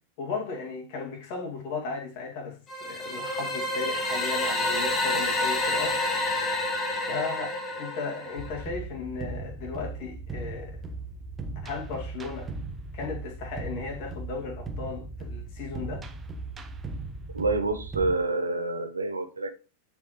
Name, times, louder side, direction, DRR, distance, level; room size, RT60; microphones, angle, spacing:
voice 1, 0.2-6.4 7.0-10.8 11.6-12.5 12.9-16.1, left 4 dB, 45° left, 2.3 m, -36 dB
sound 1, 2.7-8.6, left 2 dB, 20° left, 1.7 m, -29 dB
sound 2, 8.4-18.1, right 3 dB, 20° right, 1.0 m, -38 dB
voice 2, 17.3-19.5, right 3 dB, 80° right, 1.2 m, -27 dB
9.1 x 4.8 x 3.1 m
figure-of-eight pair, 90°, 0 cm